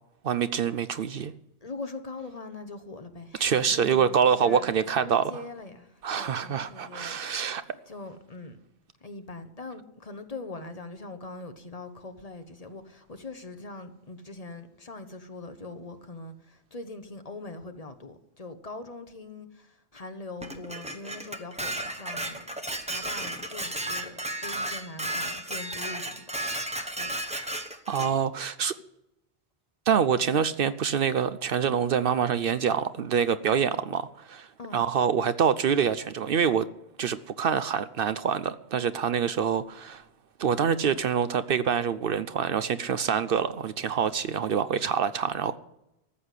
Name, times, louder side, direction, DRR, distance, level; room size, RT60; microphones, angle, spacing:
voice 1, 0.2-1.3 3.4-5.3 6.0-7.6 27.9-28.7 29.9-36.7 37.0-40.0 40.4-45.6, right 7 dB, 60° right, 0.7 m, -26 dB
voice 2, 1.6-4.7 5.1-7.6 7.9-8.6 9.0-22.5 22.9-26.2 27.0-27.1 33.5-33.7 34.6-34.8 39.1-39.3, left 3 dB, 35° left, 1.1 m, -42 dB
Dishes pots and pans, 20.4-28.1, right 1 dB, 5° right, 1.1 m, -34 dB
14.0 x 7.8 x 8.2 m
omnidirectional pair, 1.1 m